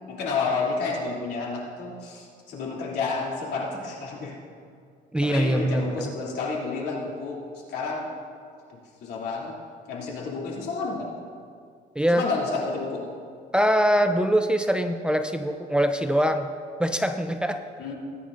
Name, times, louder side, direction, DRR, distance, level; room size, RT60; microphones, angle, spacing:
voice 1, 0.1-4.3 5.2-7.4 7.7-8.1 9.0-9.5 9.9-11.1 12.1-13.1 17.8-17.9, left 4 dB, 75° left, -3 dB, 2.9 m, -30 dB
voice 2, 5.1-6.1 12.0-12.3 13.5-16.5 16.8-17.6, equal, 5° right, 6 dB, 0.5 m, -23 dB
18.5 x 9.6 x 2.6 m, 2.3 s
cardioid pair, 110°, 17 cm